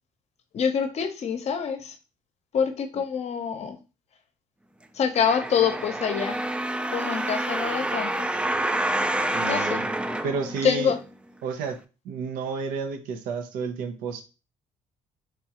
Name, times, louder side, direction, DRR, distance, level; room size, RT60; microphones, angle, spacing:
voice 1, 0.5-1.9 2.5-3.8 4.9-6.4 6.9-8.3 9.5-9.8 10.6-11.0, left 7 dB, 50° left, 7 dB, 0.7 m, -26 dB
sound 1, 5.1-11.1 11.7-11.8, right 1 dB, 10° right, 0.3 m, -28 dB
voice 2, 9.3-9.8 10.2-10.9 11.4-14.2, right 5 dB, 90° right, 7 dB, 0.6 m, -31 dB
4.2 x 2.3 x 2.8 m, 0.31 s
cardioid pair, 90°, 14 cm